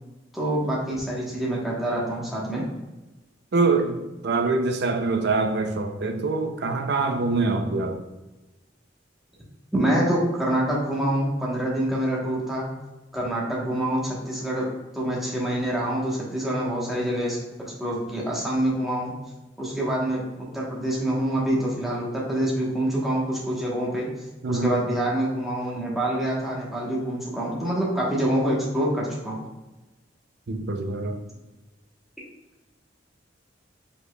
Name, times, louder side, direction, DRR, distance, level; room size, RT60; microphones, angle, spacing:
voice 1, 0.3-2.7 9.7-12.7 13.1-14.7 14.9-19.1 19.6-24.1 24.5-29.4, right 1 dB, ahead, 1.1 m, -26 dB
voice 2, 3.5-4.0 4.2-8.0 24.4-24.7 30.5-31.2, right 3 dB, 60° right, 0.5 m, -24 dB
5.0 x 4.2 x 2.3 m
head